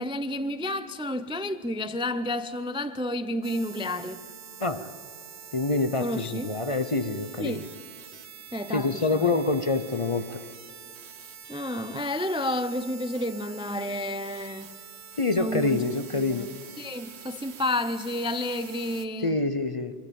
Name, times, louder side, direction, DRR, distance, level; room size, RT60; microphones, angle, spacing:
voice 1, 0.0-4.2 6.0-6.5 7.4-7.7 8.5-9.3 11.5-14.8 15.4-15.8 16.1-16.5 16.8-19.4, left 1 dB, 5° right, 0.4 m, -31 dB
sound 1, 3.4-19.1, right 7 dB, 70° right, 1.2 m, -46 dB
voice 2, 4.6-4.9 5.5-7.6 8.7-10.4 15.2-16.5 19.2-19.9, left 3 dB, 35° left, 0.6 m, -26 dB
25.0 x 24.5 x 5.3 m
omnidirectional pair, 1.1 m